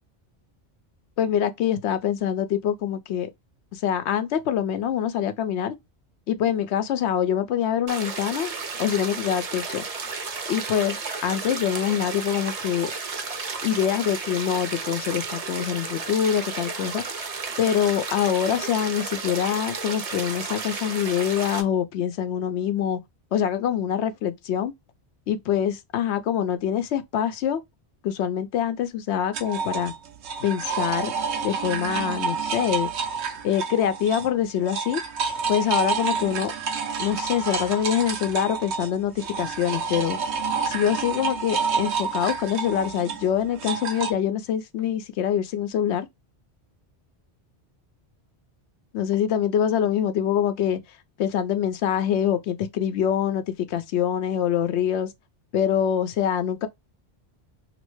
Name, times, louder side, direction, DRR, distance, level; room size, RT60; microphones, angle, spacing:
voice 1, 1.2-3.3 3.7-5.7 6.3-8.5 8.8-9.8 10.5-12.9 13.6-17.0 17.6-23.0 23.3-24.7 25.3-27.6 28.0-29.9 30.4-31.1 31.4-32.9 33.4-35.0 35.5-36.5 37.0-40.2 40.7-46.1 48.9-50.8 51.2-55.1 55.5-56.7, left 9 dB, 90° left, 0.9 m, -25 dB
sound 1, 7.9-21.6, right 4 dB, 40° right, 0.6 m, -33 dB
sound 2, 29.3-34.3 34.6-44.1, right 5 dB, 90° right, 1.0 m, -29 dB
3.1 x 2.8 x 3.1 m
omnidirectional pair, 1.1 m